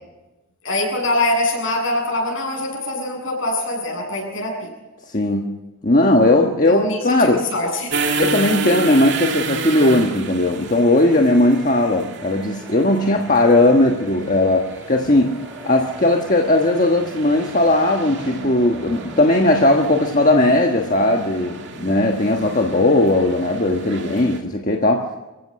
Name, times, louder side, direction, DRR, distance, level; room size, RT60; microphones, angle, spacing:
voice 1, 0.6-4.7 6.7-8.2, left 1 dB, 60° left, 1 dB, 7.7 m, -24 dB
voice 2, 5.1-5.6 5.8-7.4 8.2-25.1, left 1 dB, 35° left, 2 dB, 1.4 m, -17 dB
sound 1, 7.9-24.4, right 3 dB, 55° right, 2.5 m, -31 dB
sound 2, 9.0-19.9, equal, 15° right, 5.6 m, -43 dB
27.5 x 16.0 x 6.4 m, 1.1 s
head